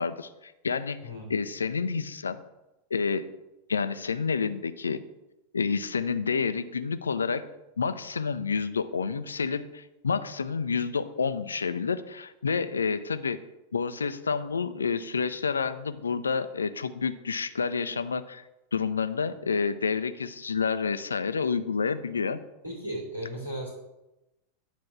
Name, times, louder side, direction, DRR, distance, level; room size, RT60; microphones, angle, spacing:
voice 1, 0.0-2.4 2.9-3.3 3.7-5.0 5.5-7.4 7.8-13.4 13.7-18.4 18.7-22.4, left 5 dB, 75° left, 12 dB, 0.5 m, -29 dB
voice 2, 22.6-23.7, equal, 85° right, -4 dB, 3.1 m, -35 dB
9.9 x 4.2 x 6.0 m, 0.96 s
figure-of-eight pair, 90°, 0 cm